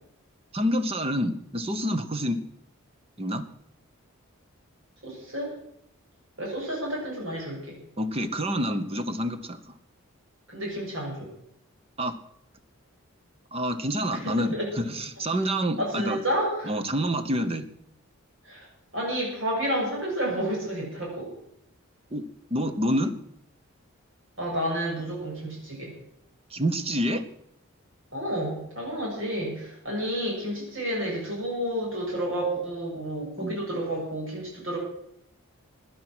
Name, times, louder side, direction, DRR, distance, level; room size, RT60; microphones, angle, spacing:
voice 1, 0.5-2.4 3.2-3.5 8.0-9.6 12.0-12.2 13.5-16.2 16.7-17.7 22.1-22.2 22.5-23.1 26.5-27.3 33.4-33.6, equal, 25° right, 10 dB, 1.0 m, -27 dB
voice 2, 5.0-5.5 6.4-7.8 10.5-11.3 14.2-14.7 15.8-16.7 18.4-18.7 18.9-21.3 24.4-25.9 28.1-34.8, right 1 dB, 60° right, -2 dB, 7.0 m, -30 dB
16.5 x 10.0 x 6.2 m, 0.75 s
head